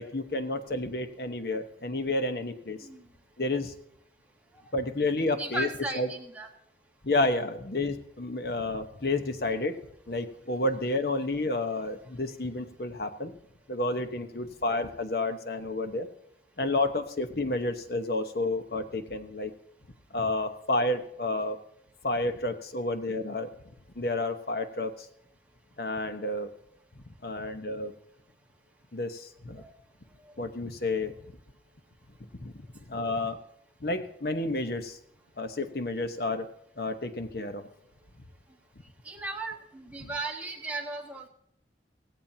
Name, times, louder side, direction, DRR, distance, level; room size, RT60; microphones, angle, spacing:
voice 1, 0.0-2.8 3.4-3.7 4.7-5.7 5.9-6.1 7.0-9.7 10.1-13.3 13.7-16.1 16.6-19.5 20.1-21.6 22.0-23.5 24.0-25.1 25.8-26.5 27.2-27.9 28.9-29.6 30.4-31.1 32.4-32.5 32.9-33.4 33.8-35.0 35.4-36.5 36.8-37.7, left 2 dB, 60° left, 8 dB, 1.0 m, -30 dB
voice 2, 5.3-6.5 29.6-29.7 39.0-41.3, right 2 dB, 10° right, -1 dB, 1.7 m, -36 dB
17.0 x 16.0 x 2.8 m, 0.73 s
head